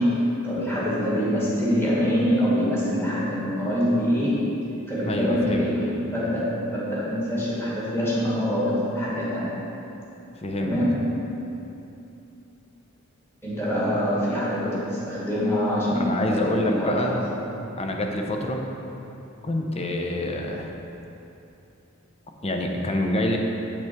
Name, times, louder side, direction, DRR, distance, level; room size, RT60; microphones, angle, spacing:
voice 1, 0.0-4.4 4.9-5.8 6.1-9.5 10.6-11.0 13.4-17.4, equal, 10° left, -8 dB, 1.9 m, -25 dB
voice 2, 5.0-5.7 10.4-10.8 15.9-17.2 17.7-18.6 19.4-20.8 22.4-23.4, left 1 dB, 30° left, 2 dB, 0.7 m, -26 dB
8.3 x 6.1 x 4.5 m, 2.9 s
head